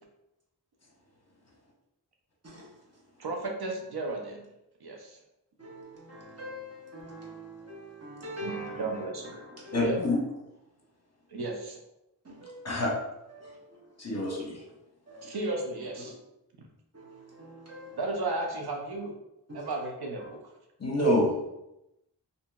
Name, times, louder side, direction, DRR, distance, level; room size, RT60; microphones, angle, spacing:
voice 1, 3.2-4.5 4.8-5.2 8.4-9.4 9.8-10.0 11.3-11.8 15.2-16.1 18.0-19.1 19.5-20.5, right 2 dB, 65° right, 0.5 m, -34 dB
voice 2, 5.6-8.7 9.7-9.8 12.3-12.6 13.4-13.6 15.1-15.2 16.9-18.0 19.5-19.6, equal, 35° right, 1.0 m, -43 dB
voice 3, 9.7-10.2 12.6-12.9 14.0-14.6 20.8-21.3, left 1 dB, 40° left, 0.8 m, -26 dB
2.8 x 2.6 x 2.3 m
wide cardioid pair, 50°, 42 cm